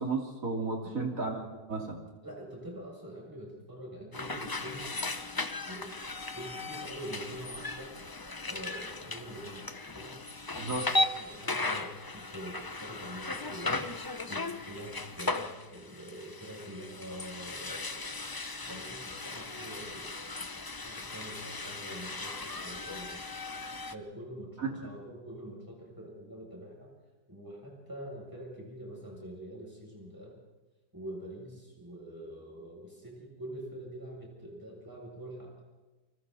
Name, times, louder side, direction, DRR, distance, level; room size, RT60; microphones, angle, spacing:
voice 1, 0.0-1.4 1.7-2.0 10.5-10.9 24.6-24.9, right 3 dB, 50° right, 1 dB, 3.3 m, -33 dB
voice 2, 2.2-4.9 5.2-5.3 5.7-6.0 6.3-10.2 10.7-13.9 14.3-18.2 18.7-20.2 20.7-23.2 23.9-26.9 27.3-30.4 30.9-35.5, right 1 dB, 10° right, -3 dB, 7.8 m, -45 dB
sound 1, 4.1-23.9, left 3 dB, 35° left, 0.3 m, -37 dB
29.0 x 25.0 x 4.2 m, 1.2 s
omnidirectional pair, 1.8 m